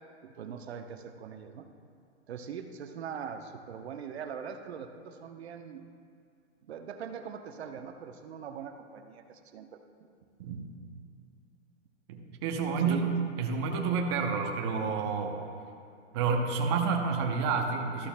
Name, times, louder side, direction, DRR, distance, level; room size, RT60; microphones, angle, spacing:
voice 1, 0.2-1.7 2.3-5.8 6.6-9.8 12.8-13.1, right 7 dB, 65° right, 6 dB, 0.8 m, -41 dB
voice 2, 12.1-15.4 16.1-18.1, right 5 dB, 25° right, 2 dB, 0.6 m, -29 dB
13.5 x 11.5 x 2.2 m, 2.4 s
hypercardioid pair, 165°, 35 cm